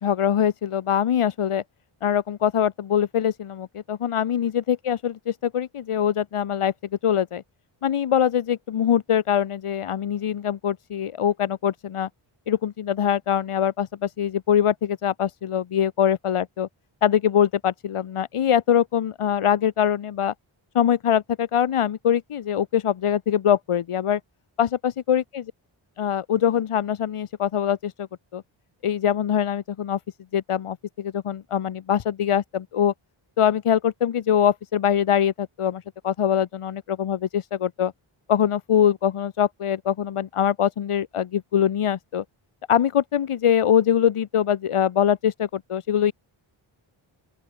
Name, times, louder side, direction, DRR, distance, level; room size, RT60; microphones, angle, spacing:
voice 1, 0.0-1.6 2.0-6.7 7.0-7.4 7.8-12.1 12.5-16.7 17.0-20.3 20.7-24.2 24.6-25.4 26.0-28.1 28.3-28.4 28.8-30.0 30.3-32.9 33.4-37.9 38.3-42.2 42.7-46.1, left 9 dB, 90° left, 1.9 m, -23 dB
open air
wide cardioid pair, 175°, 50 cm